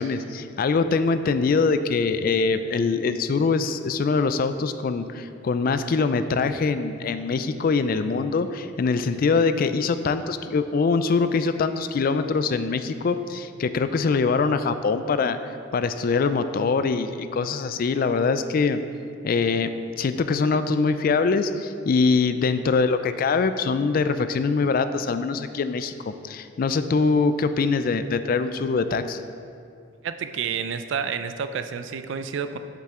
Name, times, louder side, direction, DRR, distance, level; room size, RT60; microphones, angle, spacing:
voice 1, 0.0-18.8 19.2-19.7 20.0-29.2, left 4 dB, 45° left, 11 dB, 0.3 m, -23 dB
voice 2, 30.0-32.6, right 6 dB, 65° right, 10 dB, 0.4 m, -29 dB
7.6 x 7.2 x 3.7 m, 2.4 s
head